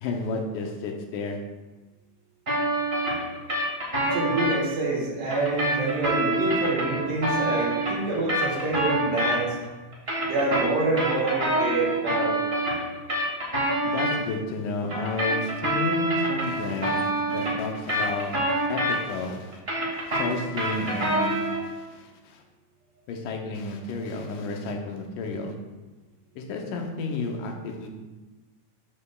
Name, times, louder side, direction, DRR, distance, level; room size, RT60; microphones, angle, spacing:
voice 1, 0.0-1.4 13.8-19.6 19.9-22.4 23.1-25.5 26.4-27.9, left 3 dB, 85° left, 2 dB, 2.3 m, -32 dB
sound 1, 2.5-4.6 5.3-9.6 9.9-14.2 14.9-19.2 19.5-21.7, right 1 dB, 45° right, 0.7 m, -26 dB
voice 2, 4.0-9.5 10.2-12.3, right 3 dB, 90° right, -5 dB, 2.7 m, -26 dB
7.4 x 6.4 x 2.3 m, 1.2 s
omnidirectional pair, 3.7 m